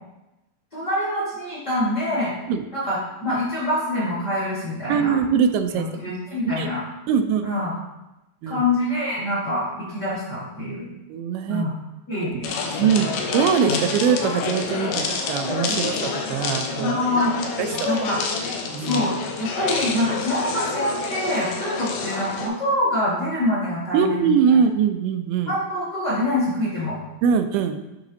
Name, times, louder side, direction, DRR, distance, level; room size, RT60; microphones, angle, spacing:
voice 1, 0.7-2.3 2.7-5.1 5.7-6.8 7.4-7.7 8.5-10.9 11.5-11.7 12.1-12.5 12.8-13.0 13.7-13.8 14.8-15.0 15.7-15.9 16.8-17.3 17.8-18.2 18.8-24.2 24.5-24.6 25.5-27.0, left 1 dB, 40° left, -8 dB, 1.5 m, -25 dB
voice 2, 4.9-5.9 6.5-6.7 7.1-7.5 8.4-8.6 11.1-11.7 12.3-12.5 12.8-17.0 17.6-17.7 18.7-19.0 23.9-25.5 27.2-27.8, right 7 dB, 85° right, 8 dB, 2.5 m, -22 dB
sound 1, 12.4-22.5, left 5 dB, 90° left, 2.8 m, -28 dB
11.5 x 4.1 x 2.7 m, 0.96 s
omnidirectional pair, 4.4 m